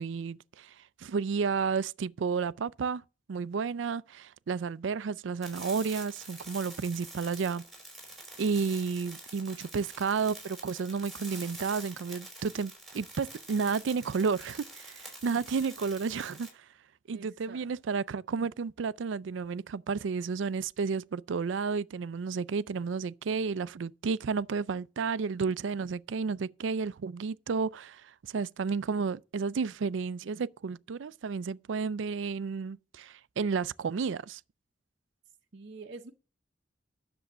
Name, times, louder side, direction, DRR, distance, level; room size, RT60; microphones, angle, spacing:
voice 1, 0.0-3.0 3.3-7.6 8.4-16.7 17.1-34.4, right 5 dB, 75° right, 0.4 m, -32 dB
sound 1, 5.4-16.5, right 2 dB, ahead, 4.8 m, -46 dB
voice 2, 17.1-17.7 35.5-36.1, right 3 dB, 60° right, 0.8 m, -46 dB
10.0 x 7.0 x 6.0 m
head